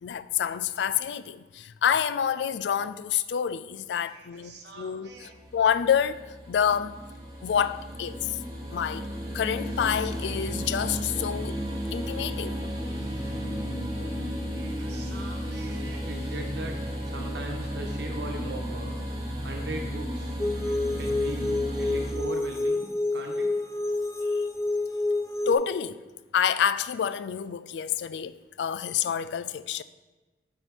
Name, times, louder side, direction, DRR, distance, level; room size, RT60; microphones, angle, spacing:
voice 1, 0.0-7.0 7.4-8.4 8.7-9.1 9.3-11.6 11.9-12.6 24.3-24.4 25.5-26.0 26.3-29.8, left 8 dB, 85° left, 0.3 m, -28 dB
voice 2, 4.0-5.3 14.5-19.0 19.4-20.4 21.0-23.5, right 1 dB, 85° right, 1.2 m, -40 dB
sound 1, 5.1-22.1, equal, 20° right, 1.4 m, -34 dB
sound 2, 20.4-25.5, left 2 dB, 15° left, 0.5 m, -28 dB
7.2 x 4.4 x 5.1 m
head